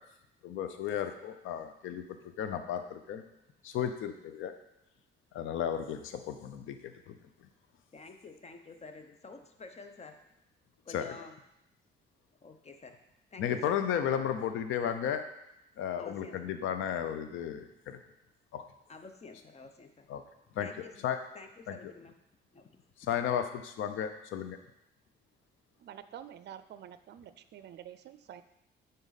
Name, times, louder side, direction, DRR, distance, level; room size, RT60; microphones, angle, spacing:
voice 1, 0.4-3.2 3.6-4.5 5.3-7.2 10.9-11.0 13.4-15.3 15.8-18.0 18.5-18.6 20.1-20.2 20.6-20.7 21.0-21.2 21.7-21.8 23.1-24.6, left 9 dB, 85° left, 8 dB, 0.6 m, -34 dB
voice 2, 7.9-10.3 10.8-11.4 12.4-13.0 13.3-13.8 16.0-16.4 18.9-20.1 20.6-21.1 21.3-22.2 22.5-22.7, left 4 dB, 35° left, 6 dB, 0.9 m, -49 dB
voice 3, 25.8-28.4, right 10 dB, 60° right, 13 dB, 0.5 m, -48 dB
9.0 x 4.0 x 4.1 m, 0.82 s
cardioid pair, 90°, 20 cm